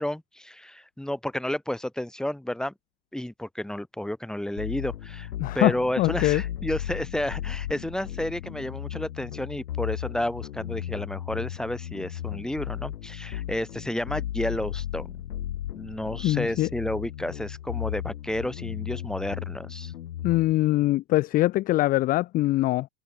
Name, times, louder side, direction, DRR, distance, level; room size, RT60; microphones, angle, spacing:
voice 1, 0.0-2.7 3.1-5.3 5.5-15.1 15.8-19.9, left 1 dB, ahead, 2.9 m, -31 dB
sound 1, 4.6-20.5, left 11 dB, 75° left, 6.0 m, -35 dB
voice 2, 5.4-6.4 16.2-16.7 20.2-22.9, left 17 dB, 20° left, 0.8 m, -23 dB
hypercardioid pair, 150°, 46 cm